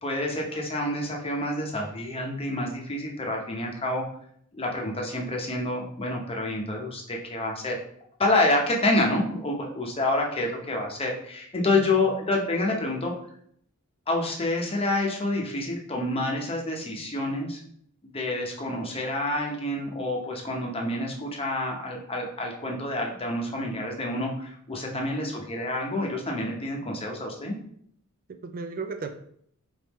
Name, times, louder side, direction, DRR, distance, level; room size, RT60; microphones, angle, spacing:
voice 1, 0.0-4.0 4.5-7.8 8.2-13.1 14.1-17.6 18.0-27.6, left 2 dB, 25° left, 0 dB, 0.8 m, -28 dB
voice 2, 11.6-12.0 24.9-25.0 28.3-29.1, right 4 dB, 40° right, 7 dB, 0.3 m, -36 dB
4.3 x 3.5 x 3.0 m, 0.66 s
head